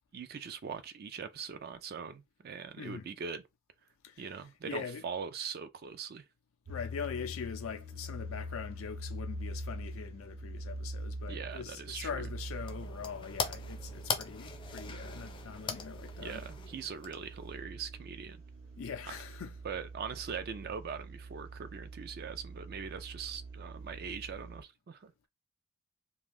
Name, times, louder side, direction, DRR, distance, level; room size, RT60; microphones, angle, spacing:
voice 1, 0.1-3.4 4.2-6.2 11.3-12.1 16.2-18.4 19.1-19.2 19.6-25.3, right 6 dB, 50° right, 0.4 m, -41 dB
voice 2, 2.8-3.1 4.0-4.3 4.6-5.0 6.7-16.4 18.8-19.6, left 6 dB, 90° left, 0.4 m, -42 dB
sound 1, 6.7-24.6, right 1 dB, 75° right, 0.8 m, -44 dB
sound 2, 12.2-17.6, left 5 dB, 25° left, 0.4 m, -41 dB
2.5 x 2.3 x 3.3 m
head